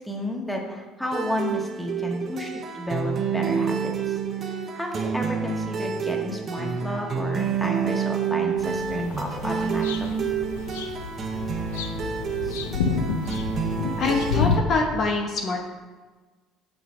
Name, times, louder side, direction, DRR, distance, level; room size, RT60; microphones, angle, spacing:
voice 1, 0.0-10.3 12.4-12.6 13.3-13.4, equal, 5° left, 0 dB, 1.5 m, -32 dB
sound 1, 1.1-14.5, right 6 dB, 45° right, 0.8 m, -28 dB
sound 2, 8.6-14.6, left 5 dB, 85° left, 0.5 m, -30 dB
voice 2, 14.0-15.6, left 3 dB, 55° left, 2 dB, 0.9 m, -24 dB
5.5 x 5.5 x 4.8 m, 1.3 s
hypercardioid pair, 65°, 0 cm